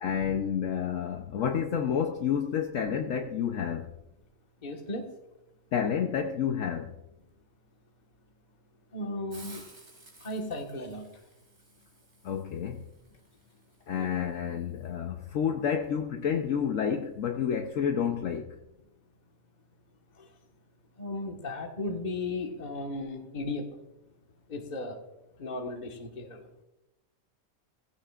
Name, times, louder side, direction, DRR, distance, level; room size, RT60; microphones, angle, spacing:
voice 1, 0.0-3.9 5.7-6.9 12.2-12.8 13.9-18.6, left 8 dB, 65° left, 1.1 m, -29 dB
voice 2, 4.6-5.0 8.9-9.6 10.2-11.1 13.9-14.1 21.0-23.6 24.5-25.0 25.4-26.4, left 2 dB, 30° left, 1.5 m, -35 dB
Hiss, 9.3-14.9, right 2 dB, 50° right, 3.6 m, -55 dB
17.0 x 15.5 x 2.4 m
omnidirectional pair, 1.5 m